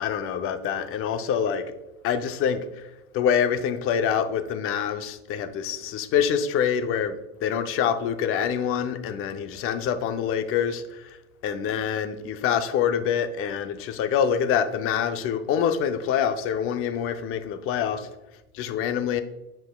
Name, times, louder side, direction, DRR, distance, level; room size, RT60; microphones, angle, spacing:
voice 1, 0.0-1.7 2.0-2.9 3.1-11.2 11.4-18.1 18.6-19.2, left 8 dB, 30° left, 0.5 m, -26 dB
8.1 x 5.4 x 2.2 m
hypercardioid pair, 110°, 45 cm